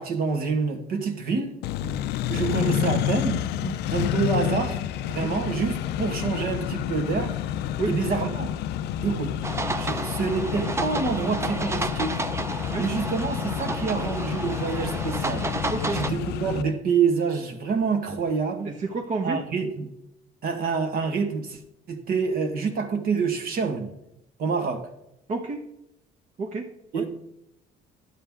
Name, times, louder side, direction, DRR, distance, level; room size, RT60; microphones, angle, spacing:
voice 1, 0.0-1.6 2.3-3.4 3.9-7.4 7.9-8.5 9.0-9.3 9.8-12.1 12.8-15.5 15.9-18.7 19.2-19.9 20.4-21.6 21.9-23.9 24.4-24.9 26.9-27.1, right 5 dB, 60° right, 5 dB, 1.6 m, -27 dB
Accelerating revving vroom, 1.6-16.6, left 11 dB, 80° left, 0.4 m, -29 dB
sound 1, 9.4-16.1, right 3 dB, 15° right, 0.6 m, -31 dB
voice 2, 11.0-11.4 12.7-12.9 15.7-16.0 18.6-19.4 25.3-25.6 26.4-27.1, right 3 dB, 45° right, 2 dB, 1.1 m, -31 dB
11.0 x 7.9 x 3.6 m, 0.83 s
cardioid pair, 110°, 17 cm